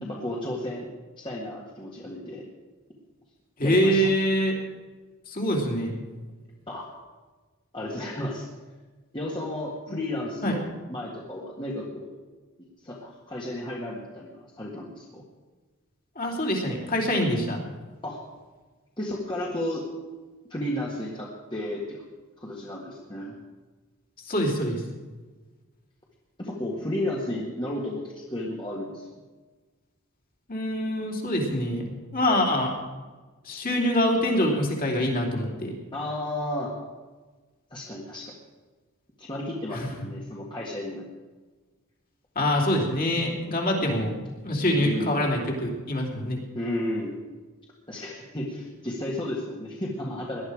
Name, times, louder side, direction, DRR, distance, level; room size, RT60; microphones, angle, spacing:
voice 1, 0.0-0.9 1.2-2.4 3.6-4.0 6.7-6.9 7.7-8.5 9.1-12.1 12.8-15.2 18.0-18.2 19.0-19.8 20.5-22.0 22.4-23.3 26.4-29.0 35.9-36.8 37.7-38.3 39.2-41.0 44.0-44.1 44.8-45.2 46.5-47.2 47.9-50.5, left 1 dB, 20° left, -4 dB, 1.8 m, -33 dB
voice 2, 3.6-4.6 5.3-5.9 10.4-10.5 16.1-17.6 24.3-24.8 30.5-31.8 32.1-32.7 33.4-35.7 39.7-39.9 42.3-44.2 44.4-46.4, equal, 40° left, 0 dB, 3.0 m, -25 dB
18.5 x 11.5 x 4.9 m, 1.3 s
head